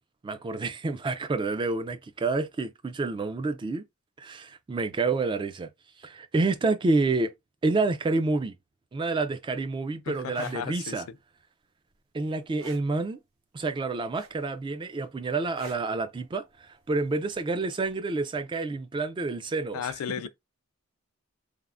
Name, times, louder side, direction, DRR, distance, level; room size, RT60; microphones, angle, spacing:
voice 1, 0.2-3.8 4.2-5.7 6.0-7.3 7.6-8.5 8.9-11.1 12.1-13.2 13.5-19.9, right 3 dB, 25° right, 0.3 m, -28 dB
voice 2, 10.1-11.0 19.7-20.3, left 8 dB, 85° left, 0.3 m, -34 dB
sound 1, 10.2-10.6 12.6-12.9 14.1-14.6 15.6-15.9 17.3-17.5, right 3 dB, 80° right, 0.9 m, -45 dB
3.4 x 2.0 x 2.4 m
head